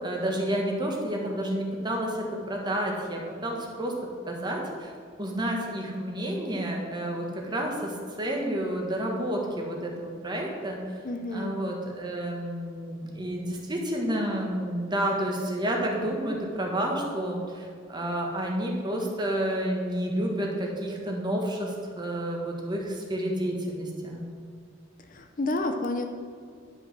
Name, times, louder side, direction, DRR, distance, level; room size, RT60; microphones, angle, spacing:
voice 1, 0.0-3.9 4.3-4.9 5.2-11.0 11.3-24.3, right 1 dB, 20° right, -1 dB, 1.6 m, -30 dB
voice 2, 11.0-11.6 25.1-26.1, left 2 dB, 45° left, 6 dB, 0.6 m, -30 dB
11.0 x 5.2 x 6.2 m, 2.2 s
head